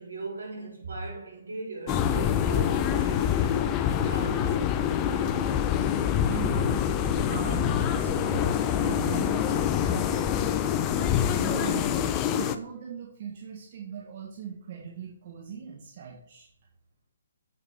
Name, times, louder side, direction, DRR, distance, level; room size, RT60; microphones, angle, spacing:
voice 1, 0.0-5.3, right 3 dB, 75° right, 3.7 m, -39 dB
sound 1, 1.9-12.6, left 9 dB, 25° left, 0.5 m, -26 dB
voice 2, 6.2-6.8 7.3-10.5 10.9-12.0 12.3-16.5, right 7 dB, 45° right, 1.9 m, -39 dB
8.2 x 6.7 x 4.6 m
figure-of-eight pair, 135°, 0 cm